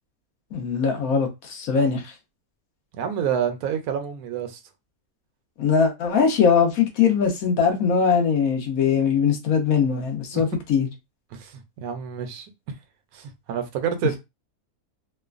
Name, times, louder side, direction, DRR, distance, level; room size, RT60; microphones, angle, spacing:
voice 1, 0.5-2.1 5.6-10.9, left 6 dB, 70° left, 1.2 m, -21 dB
voice 2, 2.9-4.6 10.3-10.4 11.3-12.7 13.1-14.2, right 8 dB, 80° right, 1.0 m, -28 dB
3.0 x 2.2 x 2.4 m
omnidirectional pair, 1.6 m